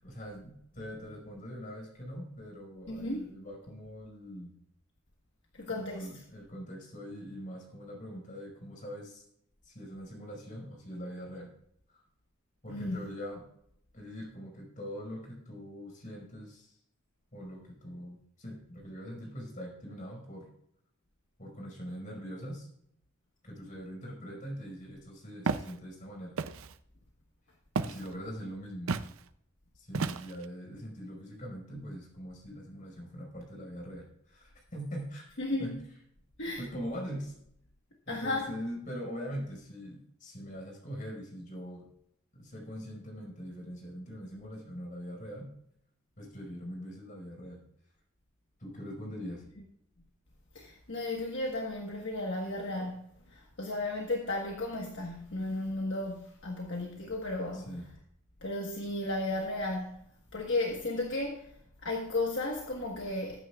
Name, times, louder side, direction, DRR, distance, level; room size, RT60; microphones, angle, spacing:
voice 1, 0.0-4.5 5.7-9.2 9.6-11.5 11.9-12.0 12.6-13.4 13.9-16.8 17.3-20.5 21.4-22.7 23.4-26.4 27.8-28.9 29.7-35.3 35.6-35.7 36.6-37.4 38.1-41.9 42.3-45.5 46.2-47.6 48.6-49.4 57.5-57.9, equal, 40° left, 5.2 m, -42 dB
voice 2, 2.9-3.3 5.5-6.1 12.7-13.1 35.4-35.8 36.4-36.6 38.1-38.6 50.5-53.0 53.3-57.7 58.4-60.0 60.3-61.5 61.8-63.4, left 2 dB, 60° left, 1.4 m, -34 dB
Walk footsteps, 25.4-25.7 26.4-26.7 27.8-28.1 28.9-29.1 29.9-30.4, right 4 dB, 80° right, 0.6 m, -32 dB
19.5 x 9.3 x 2.4 m
head